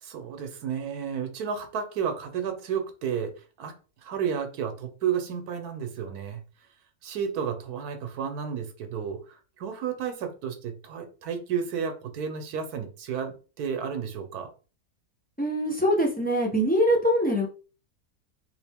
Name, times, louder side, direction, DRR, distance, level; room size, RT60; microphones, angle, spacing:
voice 1, 0.0-3.8 4.0-6.4 7.0-14.5, right 7 dB, 85° right, 1.3 m, -32 dB
voice 2, 15.4-17.5, equal, 10° left, 0.4 m, -23 dB
3.5 x 2.8 x 3.4 m
omnidirectional pair, 1.6 m